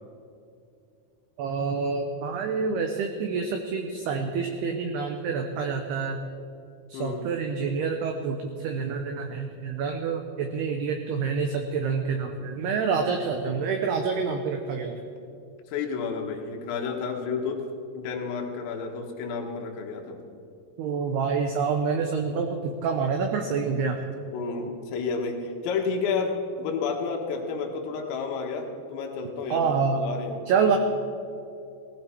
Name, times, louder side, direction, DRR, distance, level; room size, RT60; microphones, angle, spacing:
voice 1, 1.4-6.2 6.9-15.0 20.8-24.0 29.5-30.0 30.5-30.8, right 5 dB, 85° right, 4 dB, 2.2 m, -27 dB
voice 2, 6.9-7.3 15.7-17.7 18.0-20.2 24.3-30.4, left 5 dB, 80° left, 1 dB, 4.1 m, -31 dB
19.0 x 15.0 x 4.5 m, 2.6 s
omnidirectional pair, 5.9 m